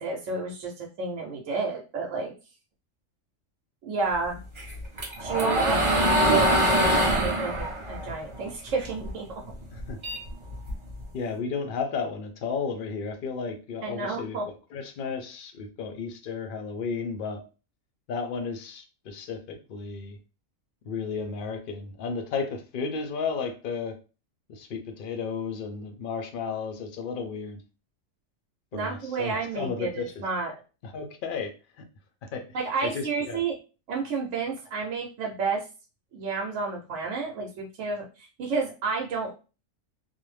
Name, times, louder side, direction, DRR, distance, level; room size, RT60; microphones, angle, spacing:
voice 1, 0.0-2.3 3.8-4.4 5.2-9.4 13.8-14.4 28.7-30.5 32.5-33.5 33.9-35.6 36.1-39.3, right 4 dB, 75° right, 1.0 m, -30 dB
sound 1, 4.6-9.1 9.5-11.0, equal, 35° right, 0.5 m, -24 dB
voice 2, 11.1-14.4 14.7-17.4 18.1-20.2 20.8-24.0 24.5-27.6 28.7-30.2 30.8-31.5 32.2-32.5 32.8-33.4, left 5 dB, 65° left, 0.5 m, -33 dB
2.5 x 2.0 x 3.1 m
omnidirectional pair, 1.3 m